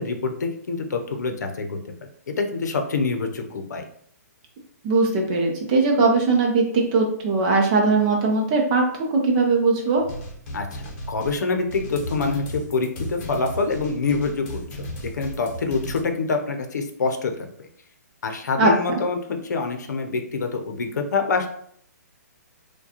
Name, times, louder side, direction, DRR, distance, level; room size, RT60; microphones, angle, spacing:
voice 1, 0.0-1.9 2.3-3.8 10.5-17.3 18.2-21.5, left 4 dB, 80° left, 5 dB, 0.7 m, -26 dB
voice 2, 4.8-8.8 9.1-10.0 18.6-18.7, right 3 dB, 30° right, 0 dB, 0.6 m, -20 dB
sound 1, 9.9-16.0, equal, 35° left, 0.9 m, -35 dB
4.6 x 2.2 x 2.9 m, 0.64 s
hypercardioid pair, 160°, 9 cm